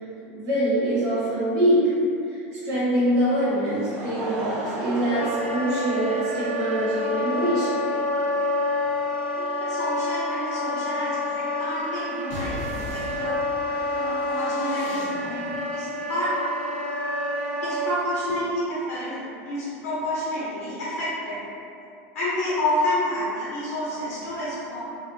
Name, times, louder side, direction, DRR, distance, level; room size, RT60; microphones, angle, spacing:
voice 1, 0.3-1.9 2.3-7.8 13.6-13.7, right 1 dB, 35° right, -11 dB, 1.2 m, -24 dB
Laughter, 3.2-6.4 7.3-7.4 8.8-8.9, right 1 dB, 60° right, 0.7 m, -35 dB
Wind instrument woodwind instrument, 5.1-18.0, left 2 dB, 15° left, 0.4 m, -28 dB
voice 2, 9.4-13.4 13.9-16.3 17.6-21.4 22.1-24.8, left 1 dB, 70° left, -8 dB, 0.6 m, -29 dB
sound 1, 12.3-15.5, left 1 dB, 45° left, 1.0 m, -38 dB
2.5 x 2.1 x 2.6 m, 2.6 s
hypercardioid pair, 105°, 8 cm